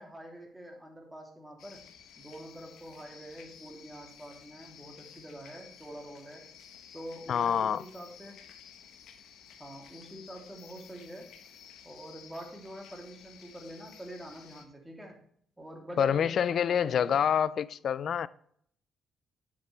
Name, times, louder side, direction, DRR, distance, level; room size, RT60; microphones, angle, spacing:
voice 1, 0.0-1.8 2.2-6.4 6.9-8.5 9.6-11.3 11.8-15.2 15.6-17.2, equal, 10° right, 2.9 m, -46 dB
sound 1, 1.6-14.6, left 8 dB, 75° left, 1.1 m, -53 dB
voice 2, 7.3-7.8 16.0-18.3, left 8 dB, 60° left, 0.4 m, -27 dB
9.5 x 8.2 x 3.3 m
cardioid pair, 90°, 0 cm